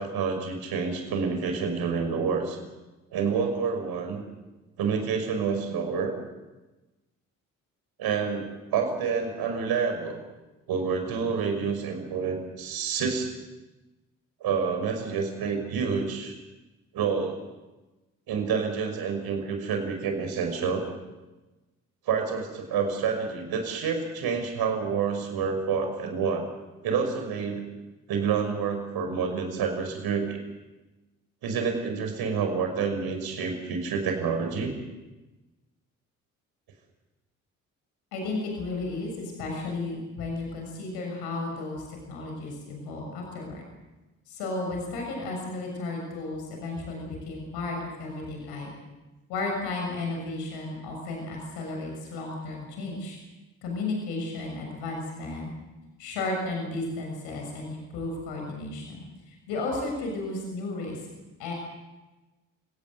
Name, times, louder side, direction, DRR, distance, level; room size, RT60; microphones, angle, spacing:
voice 1, 0.0-2.6 3.1-4.2 4.8-6.1 8.0-10.2 10.7-13.3 14.4-16.4 16.9-17.5 18.3-20.9 22.1-26.4 26.8-27.6 28.1-30.4 31.4-34.7, right 6 dB, 65° right, 5 dB, 6.0 m, -28 dB
voice 2, 38.1-43.6 44.3-48.7 49.3-53.2 53.6-55.5 56.0-61.0 61.4-61.5, left 2 dB, 70° left, 1 dB, 6.9 m, -33 dB
29.5 x 18.0 x 7.9 m, 1.1 s
hypercardioid pair, 45°, 40 cm